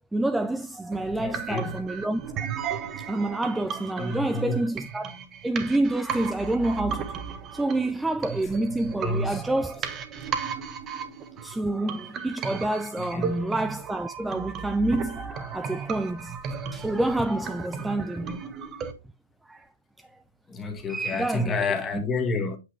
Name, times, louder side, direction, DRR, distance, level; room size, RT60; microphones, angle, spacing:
voice 1, 0.1-2.5 3.0-5.2 5.4-7.2 7.5-9.9 11.4-16.4 16.7-18.7 19.5-19.7 20.0-20.1 20.9-22.0, right 2 dB, 5° right, 0.4 m, -28 dB
sound 1, 0.9-18.9, right 7 dB, 25° right, 1.1 m, -35 dB
voice 2, 1.2-1.8 3.9-4.6 8.9-9.4 13.0-13.3 17.8-17.9 18.3-18.4 20.5-22.6, left 3 dB, 20° left, 1.7 m, -30 dB
8.3 x 5.3 x 3.2 m
hypercardioid pair, 125°, 0 cm